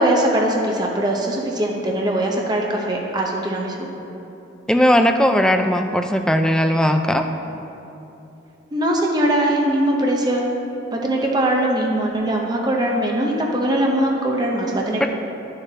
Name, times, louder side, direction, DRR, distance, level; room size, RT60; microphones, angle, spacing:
voice 1, 0.0-3.9 8.7-10.5 10.9-15.1, right 1 dB, 20° right, -1 dB, 0.7 m, -21 dB
voice 2, 4.7-7.3 15.0-15.1, equal, 5° left, 5 dB, 0.3 m, -17 dB
11.0 x 6.8 x 2.8 m, 2.9 s
head